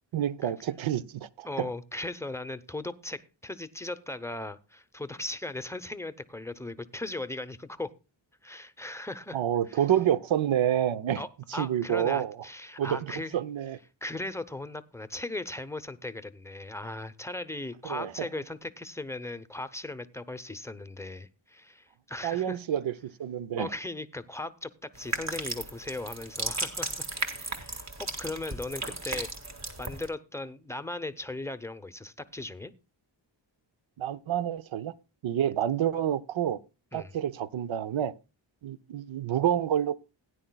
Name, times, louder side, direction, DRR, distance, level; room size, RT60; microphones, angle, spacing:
voice 1, 0.1-1.7 9.3-11.2 11.5-12.4 12.8-13.8 17.8-18.3 22.2-23.7 34.0-34.9 35.2-36.6 36.9-38.1 38.6-40.0, right 10 dB, 75° right, 0.7 m, -28 dB
voice 2, 1.4-7.9 8.4-9.4 9.7-9.8 11.2-13.4 14.0-22.6 23.6-26.9 27.3-29.3 29.8-32.7 36.9-37.1, left 2 dB, 5° left, 0.7 m, -38 dB
sound 1, 25.0-30.1, right 2 dB, 35° right, 1.8 m, -35 dB
17.0 x 10.0 x 2.3 m
wide cardioid pair, 100°, 47 cm